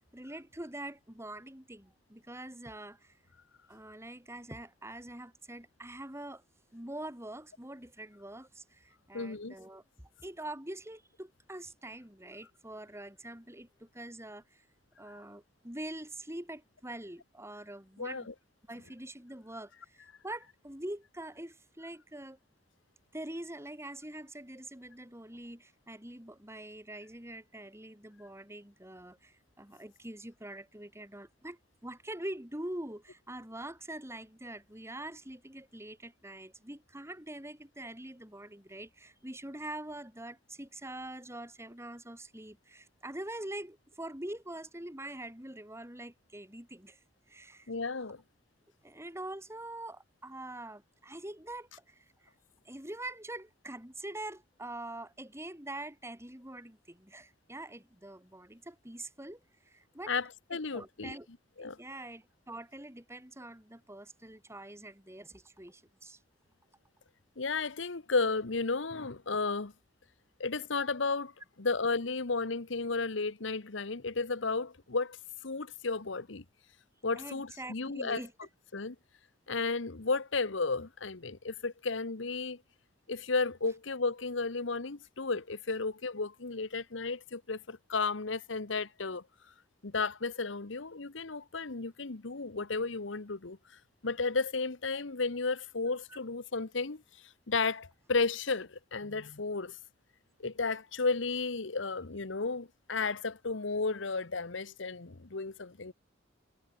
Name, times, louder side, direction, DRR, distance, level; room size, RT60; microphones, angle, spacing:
voice 1, 0.1-3.1 3.7-6.4 6.7-9.8 10.2-14.6 15.0-18.3 18.7-22.4 23.1-47.0 47.3-47.7 48.8-52.0 52.6-59.4 59.7-60.1 60.5-61.3 61.6-66.2 77.2-78.3, right 1 dB, 15° right, 6.5 m, -44 dB
voice 2, 9.1-9.5 18.0-18.3 47.7-48.2 60.1-61.2 61.6-61.8 67.4-69.7 70.4-71.3 71.6-75.2 75.4-76.4 77.0-78.2 78.7-79.0 79.5-82.6 83.1-89.2 89.8-93.6 94.0-99.8 100.4-105.9, left 4 dB, 70° left, 1.2 m, -33 dB
head